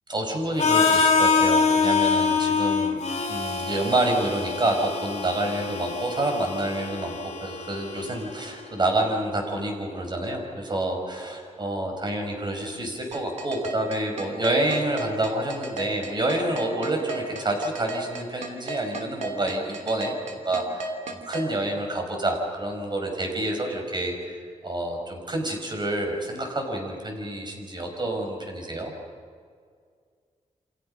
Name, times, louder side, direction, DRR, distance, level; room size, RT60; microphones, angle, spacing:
voice 1, 0.1-3.0 3.3-28.9, right 1 dB, 35° right, 2 dB, 6.2 m, -28 dB
Harmonica, 0.6-8.5, left 5 dB, 55° left, 4.0 m, -25 dB
sound 1, 13.1-21.5, right 3 dB, 65° right, 3.4 m, -34 dB
29.5 x 26.5 x 5.7 m, 2.1 s
cardioid pair, 90°, 13 cm